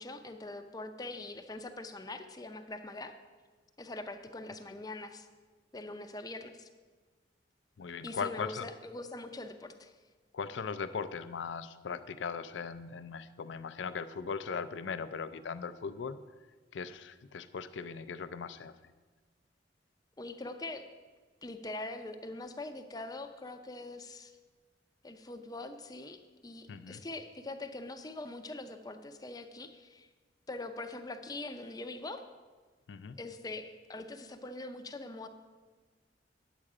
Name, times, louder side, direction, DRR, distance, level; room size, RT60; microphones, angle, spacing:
voice 1, 0.0-3.1 3.8-5.3 5.7-6.7 8.0-9.9 20.2-20.9 21.4-24.4 25.0-30.1 30.5-32.2 33.2-35.3, left 2 dB, 20° left, 7 dB, 0.5 m, -43 dB
voice 2, 7.8-8.7 10.3-16.2 16.7-18.7 26.7-27.0 32.9-33.2, left 5 dB, 80° left, 12 dB, 0.4 m, -39 dB
9.8 x 7.4 x 4.9 m, 1.4 s
head